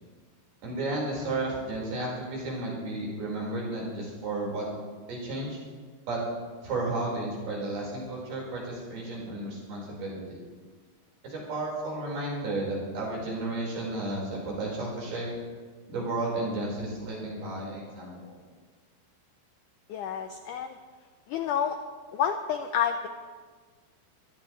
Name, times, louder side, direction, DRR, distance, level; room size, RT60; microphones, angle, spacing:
voice 1, 0.6-4.7 5.1-5.6 6.1-6.2 6.6-10.4 11.2-15.3 15.9-18.3, right 2 dB, 70° right, -4 dB, 6.9 m, -33 dB
voice 2, 19.9-20.8 21.3-21.8 22.1-23.1, left 8 dB, 90° left, 7 dB, 1.8 m, -29 dB
25.0 x 17.0 x 3.3 m, 1.5 s
omnidirectional pair, 4.4 m